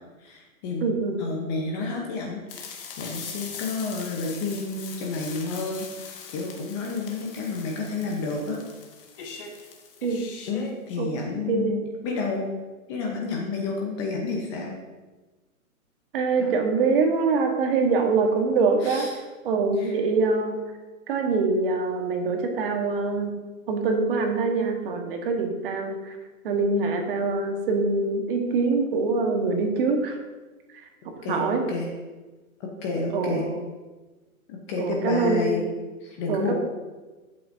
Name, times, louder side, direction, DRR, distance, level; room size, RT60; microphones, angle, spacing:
voice 1, 0.2-0.9 1.2-8.6 10.5-12.5 12.9-14.7 16.4-16.6 18.8-19.1 19.8-19.9 31.2-31.9 32.6-33.5 34.5-35.6 36.0-36.5, left 3 dB, 20° left, 0 dB, 0.8 m, -30 dB
voice 2, 0.8-1.2 10.0-10.2 11.0-11.1 11.5-11.9 16.1-19.1 19.4-20.6 21.1-23.4 23.7-26.2 26.4-30.2 31.3-31.6 33.1-33.6 34.8-35.6 36.3-36.5, right 4 dB, 40° right, 3 dB, 1.4 m, -24 dB
sound 1, 2.5-11.0, left 5 dB, 40° left, 1.4 m, -41 dB
11.0 x 8.2 x 2.7 m, 1.2 s
hypercardioid pair, 150°, 43 cm